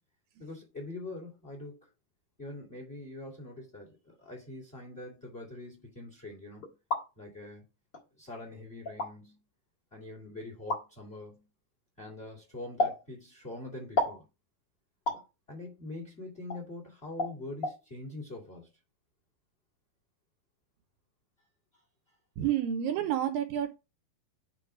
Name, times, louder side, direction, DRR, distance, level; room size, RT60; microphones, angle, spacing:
voice 1, 0.4-1.8 2.4-6.7 7.2-7.6 8.2-9.4 9.9-11.5 12.0-14.3 15.5-18.7, left 2 dB, 20° left, 1.8 m, -44 dB
sound 1, 6.6-7.1 7.9-8.0 8.9-9.1 10.7-10.8 12.8-13.0 14.0-14.2 15.1-15.3 16.5-16.6 17.2-17.3 17.6-17.8, left 1 dB, 45° left, 1.4 m, -30 dB
voice 2, 22.4-23.7, right 10 dB, 80° right, 2.2 m, -29 dB
8.5 x 3.2 x 4.9 m
omnidirectional pair, 4.5 m